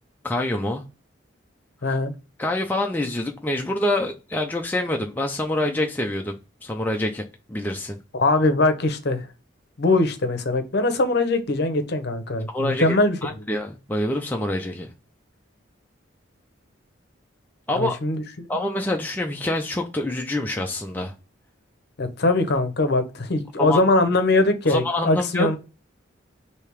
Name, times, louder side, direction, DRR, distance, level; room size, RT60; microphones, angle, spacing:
voice 1, 0.2-0.8 2.4-8.0 12.5-13.0 13.2-14.9 17.7-18.0 18.5-21.1 23.6-23.8 24.7-25.6, left 1 dB, 10° left, 0.4 m, -26 dB
voice 2, 1.8-2.1 8.1-9.3 9.8-13.5 17.8-18.5 22.0-25.6, left 2 dB, 55° left, 0.7 m, -22 dB
3.3 x 2.8 x 4.6 m
head